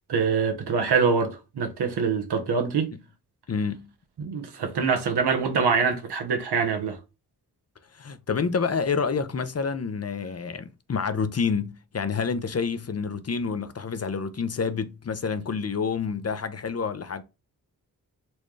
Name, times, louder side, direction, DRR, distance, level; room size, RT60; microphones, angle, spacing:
voice 1, 0.1-2.9 4.2-7.0, right 5 dB, 75° right, 1.0 m, -24 dB
voice 2, 3.5-3.9 7.9-17.2, left 5 dB, 40° left, 0.6 m, -28 dB
4.3 x 2.3 x 3.2 m
cardioid pair, 40°, 40 cm